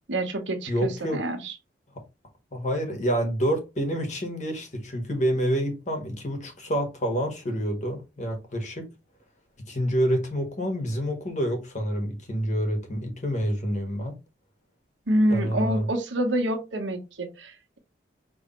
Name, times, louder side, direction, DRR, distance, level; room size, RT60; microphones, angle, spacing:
voice 1, 0.1-1.5 15.1-17.8, right 1 dB, 85° right, 1.2 m, -27 dB
voice 2, 0.7-1.2 2.5-8.9 9.7-14.1 15.3-15.9, equal, 40° left, 1.3 m, -28 dB
5.5 x 3.2 x 3.1 m
head